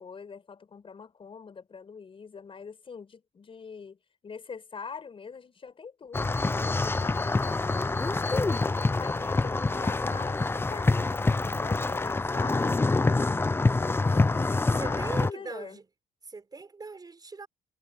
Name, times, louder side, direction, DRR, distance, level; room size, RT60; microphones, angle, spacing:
voice 1, 0.0-4.0 4.2-8.6 9.0-14.3 14.7-15.8, left 5 dB, 30° left, 5.5 m, -44 dB
sound 1, 6.1-15.3, left 3 dB, 15° left, 0.7 m, -26 dB
voice 2, 14.7-15.9 16.3-17.5, right 4 dB, 25° right, 5.0 m, -40 dB
cardioid pair, 110°, 17 cm